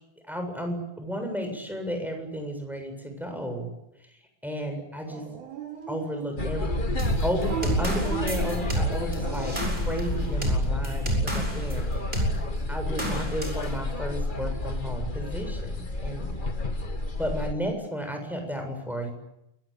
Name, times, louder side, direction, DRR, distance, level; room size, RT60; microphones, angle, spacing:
voice 1, 0.3-3.7 4.1-5.2 5.9-6.9 7.2-11.9 12.7-16.3 17.2-19.1, equal, ahead, 4 dB, 7.3 m, -33 dB
Dog, 5.1-6.6 7.4-9.7, right 8 dB, 75° right, 4.3 m, -37 dB
sound 1, 6.4-17.5, left 2 dB, 20° left, 1.4 m, -30 dB
sound 2, 7.0-11.8 12.1-12.3 13.0-13.7, right 1 dB, 15° right, 7.9 m, -29 dB
28.5 x 23.5 x 8.8 m, 0.86 s
omnidirectional pair, 3.5 m